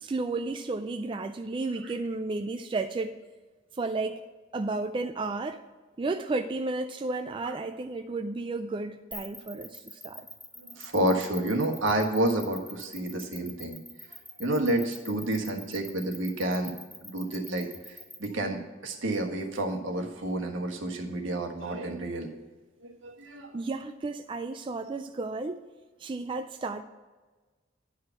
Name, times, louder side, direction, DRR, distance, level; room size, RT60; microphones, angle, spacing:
voice 1, 0.0-3.2 3.7-4.3 4.5-5.6 6.0-10.3 23.5-25.7 26.0-26.8, right 3 dB, 25° right, 7 dB, 0.3 m, -32 dB
sound 1, 9.1-18.3, left 1 dB, ahead, 0.9 m, -44 dB
voice 2, 10.6-13.8 14.4-16.7 17.0-22.3 22.8-23.6, right 1 dB, 75° right, 2 dB, 1.4 m, -30 dB
10.5 x 4.9 x 5.8 m, 1.3 s
head